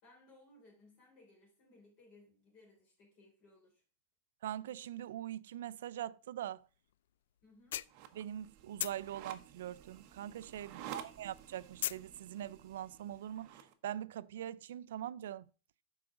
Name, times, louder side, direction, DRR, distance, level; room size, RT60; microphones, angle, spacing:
voice 1, 0.0-3.8 7.4-7.8 10.7-11.1, left 2 dB, 35° left, 4.6 m, -63 dB
voice 2, 4.4-6.7 8.2-15.5, right 11 dB, 80° right, 0.4 m, -43 dB
sound 1, 6.9-7.0 7.4-8.5 8.8-10.6 10.9-12.1, left 12 dB, 75° left, 0.3 m, -39 dB
sound 2, 7.9-13.7, right 10 dB, 35° right, 0.9 m, -52 dB
12.0 x 4.9 x 3.7 m
supercardioid pair, 175°, 0 cm